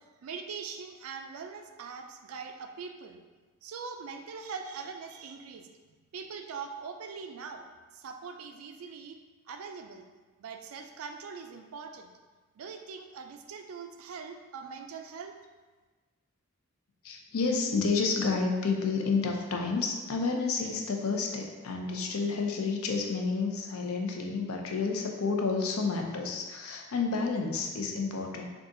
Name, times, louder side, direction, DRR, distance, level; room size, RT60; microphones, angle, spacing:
voice 1, 0.2-3.2 3.6-5.7 6.1-7.6 7.9-9.2 9.5-10.1 10.4-12.1 12.6-15.3, right 5 dB, 75° right, 5 dB, 0.4 m, -42 dB
voice 2, 17.0-28.5, left 4 dB, 80° left, 2 dB, 0.5 m, -30 dB
3.8 x 2.4 x 3.7 m, 1.3 s
head